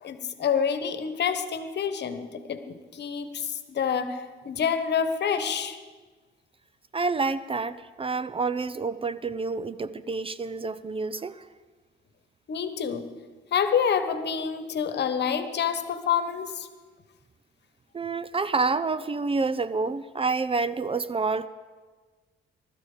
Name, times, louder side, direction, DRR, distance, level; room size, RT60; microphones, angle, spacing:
voice 1, 0.0-5.8 12.5-13.1 13.5-16.7, left 7 dB, 60° left, 10 dB, 1.3 m, -27 dB
voice 2, 6.9-11.4 17.9-21.5, right 4 dB, 30° right, 16 dB, 0.6 m, -28 dB
20.5 x 13.0 x 5.1 m, 1.4 s
cardioid pair, 90°, 20 cm